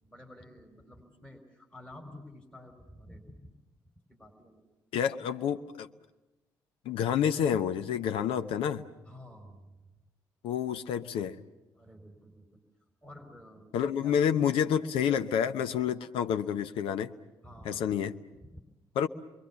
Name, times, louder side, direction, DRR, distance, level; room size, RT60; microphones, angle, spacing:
voice 1, 0.0-3.4 4.1-4.6 9.0-9.7 11.7-12.6 13.0-14.6 17.4-17.9 18.4-18.6, left 1 dB, 10° left, 2 dB, 4.5 m, -51 dB
voice 2, 4.9-5.9 6.8-8.9 10.4-11.4 13.7-17.1 17.6-18.1 18.9-19.1, left 8 dB, 60° left, 10 dB, 0.9 m, -29 dB
28.5 x 23.0 x 7.0 m, 1.1 s
figure-of-eight pair, 45°, 10 cm